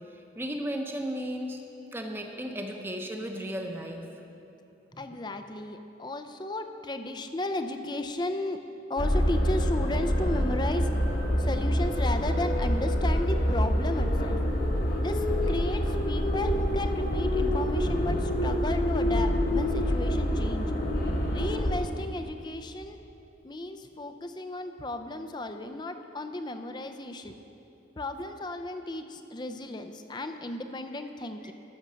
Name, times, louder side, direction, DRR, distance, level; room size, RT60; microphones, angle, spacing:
voice 1, 0.1-1.6 1.9-4.1 4.9-5.1 31.4-31.5, equal, 10° right, 3 dB, 0.8 m, -35 dB
voice 2, 5.0-8.6 8.9-10.9 11.4-14.4 15.0-20.7 21.3-23.0 23.4-27.4 28.0-31.5, left 2 dB, 25° left, 7 dB, 0.5 m, -34 dB
sound 1, 9.0-21.8, equal, 50° left, 1.2 m, -26 dB
14.0 x 6.5 x 6.2 m, 2.8 s
head